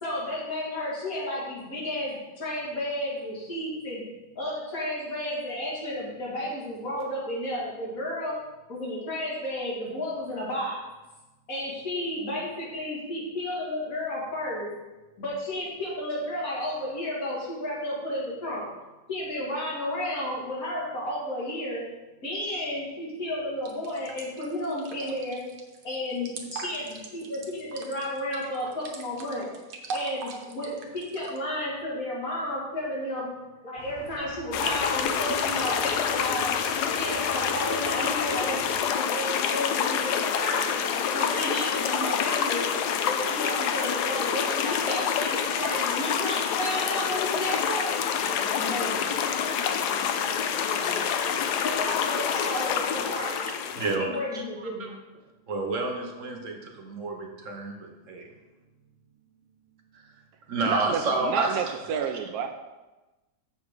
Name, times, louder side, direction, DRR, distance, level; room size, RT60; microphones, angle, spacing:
voice 1, 0.0-4.0 4.4-8.3 8.7-10.8 11.5-14.7 15.2-18.6 19.1-21.8 22.2-25.4 25.8-29.5 29.9-33.3 33.6-36.5 37.0-40.7 41.1-42.6 43.0-47.9 48.6-49.1 51.6-53.5 54.0-54.9, left 1 dB, 55° left, -6 dB, 2.9 m, -32 dB
sound 1, 23.7-31.4, right 5 dB, 90° right, 1.7 m, -40 dB
Squeak, 33.8-38.8, equal, 25° left, 2.0 m, -45 dB
sound 2, 34.5-54.0, left 7 dB, 75° left, 1.2 m, -27 dB
voice 2, 53.8-54.9 55.5-58.3 59.9-60.0 60.5-61.7, right 3 dB, 55° right, 2 dB, 1.2 m, -30 dB
voice 3, 60.6-62.6, right 7 dB, 70° right, 6 dB, 1.1 m, -30 dB
7.1 x 6.7 x 4.8 m, 1.1 s
omnidirectional pair, 1.8 m